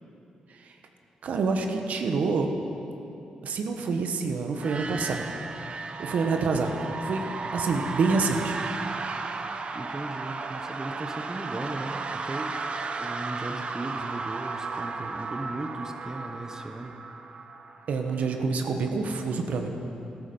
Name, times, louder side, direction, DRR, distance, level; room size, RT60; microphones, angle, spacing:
voice 1, 1.2-2.5 3.4-5.3 6.0-8.6 17.9-19.7, right 4 dB, 70° right, 5 dB, 1.1 m, -27 dB
sound 1, 4.5-18.3, right 4 dB, 50° right, 0.9 m, -35 dB
voice 2, 9.7-12.6 13.0-17.0, right 2 dB, 25° right, 6 dB, 1.0 m, -37 dB
13.0 x 13.0 x 5.4 m, 2.8 s
cardioid pair, 75°, 3 cm